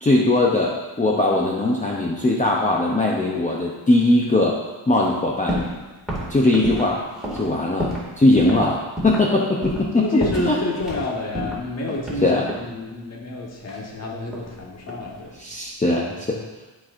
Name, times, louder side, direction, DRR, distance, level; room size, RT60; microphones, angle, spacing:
voice 1, 0.0-5.6 6.3-7.0 7.3-8.8 9.0-10.6 12.2-12.4 15.4-16.4, left 2 dB, 15° left, -3 dB, 0.6 m, -20 dB
sound 1, 5.5-5.8 6.1-8.1 8.4-8.6 9.0-9.3 9.6-9.9 10.2-11.0 11.3-12.7 13.7-14.6 14.9-15.3, equal, ahead, 2.1 m, -29 dB
voice 2, 9.9-15.4, left 2 dB, 30° left, -2 dB, 1.3 m, -29 dB
12.0 x 4.5 x 2.5 m, 1.2 s
cardioid pair, 110°, 48 cm